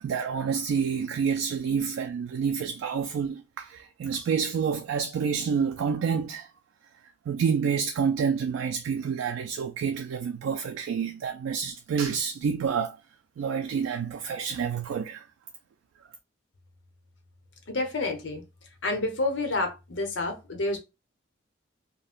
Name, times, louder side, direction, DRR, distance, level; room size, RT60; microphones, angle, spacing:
voice 1, 0.0-6.5 7.3-13.0 13.4-15.2, right 6 dB, 90° right, 0.3 m, -28 dB
voice 2, 17.7-18.4 18.8-20.8, left 2 dB, 70° left, 0.8 m, -29 dB
2.5 x 2.1 x 3.5 m
head